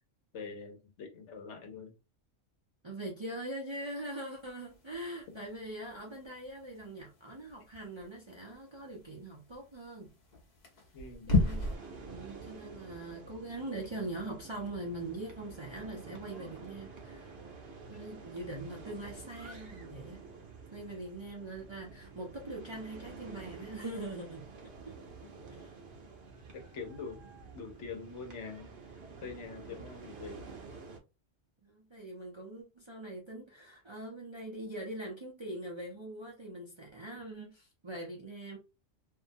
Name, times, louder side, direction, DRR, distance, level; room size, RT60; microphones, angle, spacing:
voice 1, 0.3-1.9 5.3-5.4 10.9-11.4 26.5-27.2 27.5-28.7 29.2-30.6, left 5 dB, 70° left, 1.0 m, -44 dB
voice 2, 2.8-10.1 11.3-17.4 17.9-20.2 20.7-24.5 24.9-25.0 25.5-25.7 29.6-29.9 31.6-38.6, right 1 dB, 35° right, 0.5 m, -42 dB
sound 1, 4.4-11.8, left 3 dB, 45° left, 0.8 m, -36 dB
sound 2, 11.4-31.0, right 4 dB, 60° right, 0.9 m, -49 dB
2.6 x 2.2 x 2.5 m
omnidirectional pair, 1.2 m